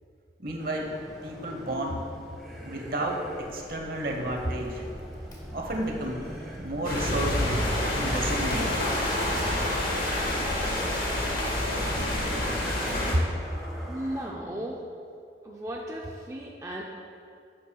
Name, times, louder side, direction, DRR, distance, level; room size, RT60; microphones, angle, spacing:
voice 1, 0.4-1.0 1.2-2.0 2.6-4.8 5.5-6.2 6.6-8.7 13.1-13.2, right 1 dB, 55° right, 1 dB, 1.0 m, -31 dB
sound 1, 0.6-14.3, equal, ahead, 1.3 m, -44 dB
Crackle, 3.3-12.5, equal, 20° left, 1.0 m, -42 dB
sound 2, 6.8-13.1, left 1 dB, 50° left, 1.5 m, -28 dB
voice 2, 13.9-14.9 15.4-16.8, right 1 dB, 15° right, -2 dB, 0.4 m, -35 dB
11.0 x 7.6 x 2.3 m, 2.5 s
head